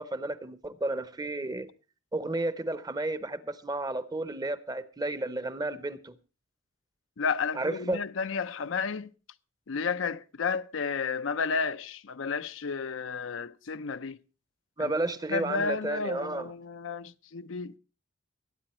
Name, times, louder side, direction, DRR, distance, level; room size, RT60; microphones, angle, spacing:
voice 1, 0.0-1.7 2.1-6.1 7.5-8.0 14.8-16.5, right 2 dB, 20° right, 0.8 m, -32 dB
voice 2, 7.2-9.1 9.7-14.2 14.8-14.9 15.3-17.8, left 5 dB, 75° left, 0.6 m, -32 dB
21.5 x 8.8 x 4.3 m
head